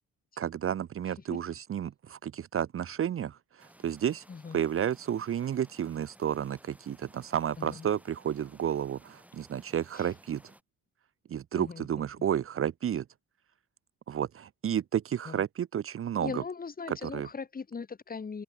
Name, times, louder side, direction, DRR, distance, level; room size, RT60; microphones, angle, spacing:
voice 1, 0.4-4.2 4.5-10.4 11.3-13.0 14.1-16.4 16.9-17.3, right 9 dB, 45° right, 0.8 m, -31 dB
sound 1, 3.6-10.6, right 1 dB, 5° right, 4.8 m, -58 dB
voice 2, 4.3-4.6 7.6-7.9 9.9-10.1 11.6-12.0 15.2-15.4 16.2-18.4, left 5 dB, 30° left, 1.7 m, -39 dB
cardioid pair, 90°, 30 cm